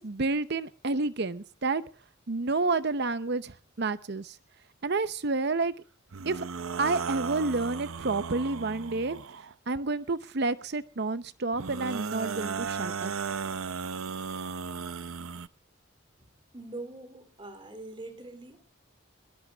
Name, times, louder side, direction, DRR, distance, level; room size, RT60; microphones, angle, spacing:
voice 1, 0.0-1.8 2.3-4.4 4.8-5.7 6.3-6.5 6.8-9.2 9.7-13.1, right 3 dB, 55° right, 14 dB, 0.8 m, -29 dB
sound 1, 6.1-9.5 11.5-15.5, right 6 dB, 90° right, 0.7 m, -35 dB
voice 2, 16.2-18.6, right 2 dB, 25° right, 9 dB, 2.9 m, -43 dB
22.5 x 21.0 x 2.4 m, 0.36 s
head